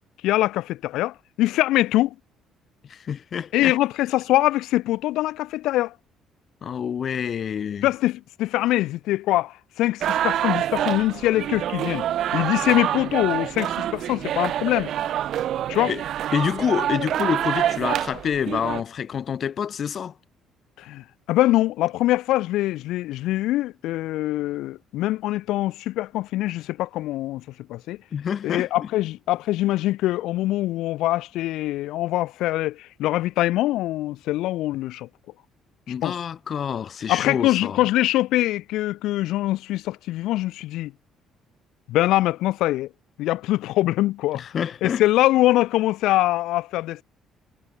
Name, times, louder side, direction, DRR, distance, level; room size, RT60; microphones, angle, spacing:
voice 1, 0.2-2.1 3.5-5.9 7.8-12.0 12.3-14.9 15.7-15.9 20.8-27.4 27.7-28.0 28.4-35.1 36.0-36.2 37.1-40.9 41.9-42.9 43.2-44.4 44.8-47.0, left 16 dB, 80° left, 1.2 m, -23 dB
voice 2, 2.9-3.7 6.6-7.9 15.9-16.0 16.3-20.1 28.1-28.9 35.9-37.8 44.3-45.0, left 8 dB, 45° left, 1.0 m, -27 dB
sound 1, 10.0-18.8, right 11 dB, 60° right, 0.6 m, -26 dB
cardioid pair, 125°, 0 cm